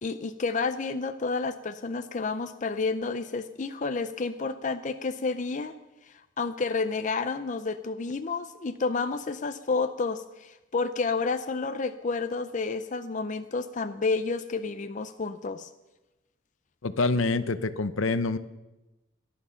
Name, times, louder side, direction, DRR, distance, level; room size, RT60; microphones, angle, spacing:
voice 1, 0.0-5.7 6.1-15.7, left 4 dB, 35° left, 9 dB, 0.5 m, -30 dB
voice 2, 16.8-18.4, left 3 dB, 70° left, 13 dB, 0.8 m, -26 dB
18.0 x 11.5 x 5.7 m, 1.0 s
head